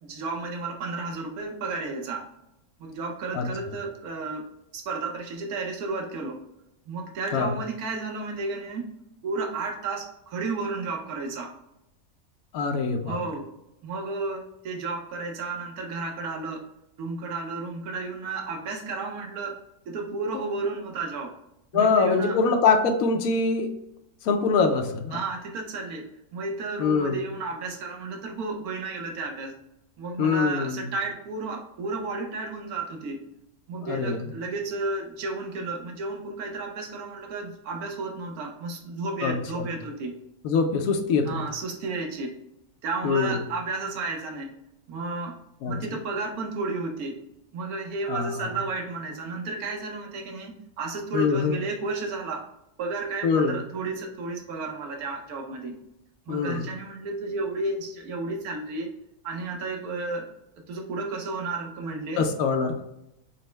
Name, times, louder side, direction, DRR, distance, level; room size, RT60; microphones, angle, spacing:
voice 1, 0.0-2.3 2.8-4.5 4.7-6.4 6.9-8.9 9.2-11.5 13.0-13.5 13.8-16.6 17.0-19.6 19.9-21.3 21.7-22.4 25.1-26.1 26.3-29.5 30.0-33.2 33.7-40.2 41.3-42.3 42.8-44.5 44.9-45.4 45.7-47.2 47.5-52.5 52.8-55.8 56.3-58.9 59.2-60.3 60.7-62.3, right 3 dB, 85° right, 2 dB, 1.3 m, -32 dB
voice 2, 12.5-13.2 20.3-20.4 21.7-23.7 24.2-25.2 26.8-27.2 30.2-30.9 33.8-34.2 39.2-39.7 40.4-41.4 43.0-43.4 45.6-45.8 48.1-48.4 51.1-51.6 53.2-53.6 56.3-56.7 62.2-62.8, left 5 dB, 75° left, 4 dB, 1.0 m, -24 dB
5.3 x 2.0 x 3.2 m, 0.83 s
omnidirectional pair, 1.5 m